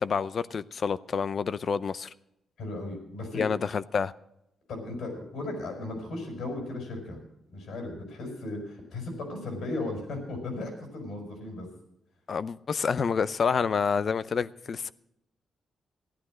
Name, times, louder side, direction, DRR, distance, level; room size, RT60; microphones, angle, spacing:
voice 1, 0.0-2.1 3.3-4.1 12.3-14.9, left 6 dB, 50° left, 16 dB, 0.6 m, -28 dB
voice 2, 2.6-3.5 4.7-7.2 7.5-11.7, left 2 dB, 80° left, 3 dB, 5.7 m, -36 dB
14.5 x 11.5 x 6.4 m, 0.82 s
cardioid pair, 105°, 0 cm